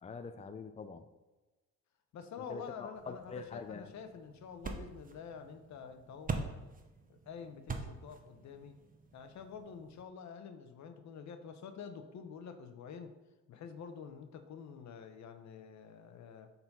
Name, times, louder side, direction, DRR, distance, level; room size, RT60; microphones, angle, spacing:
voice 1, 0.0-1.0 2.5-3.9, left 4 dB, 20° left, 8 dB, 0.6 m, -44 dB
voice 2, 2.1-6.7 7.1-8.8 9.1-13.1 13.5-16.5, left 6 dB, 65° left, 8 dB, 0.9 m, -48 dB
sound 1, 2.9-10.0, right 4 dB, 30° right, 1.0 m, -45 dB
7.0 x 4.1 x 5.4 m, 1.1 s
cardioid pair, 90°, 30 cm